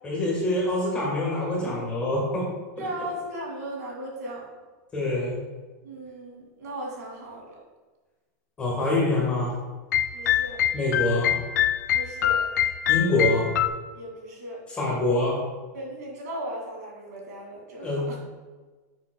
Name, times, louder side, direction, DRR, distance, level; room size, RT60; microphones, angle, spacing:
voice 1, 0.0-2.4 2.8-2.9 4.9-5.4 8.6-9.5 10.7-11.3 12.9-13.5 14.8-15.4 17.8-18.2, left 2 dB, 10° left, -4 dB, 1.5 m, -25 dB
voice 2, 2.8-4.5 5.8-7.6 10.1-10.6 11.9-12.4 13.9-14.6 15.7-18.2, right 1 dB, 70° right, 0 dB, 2.4 m, -37 dB
sound 1, 9.9-13.7, left 11 dB, 80° left, 0.4 m, -24 dB
10.5 x 6.7 x 2.3 m, 1.3 s
supercardioid pair, 180°, 9 cm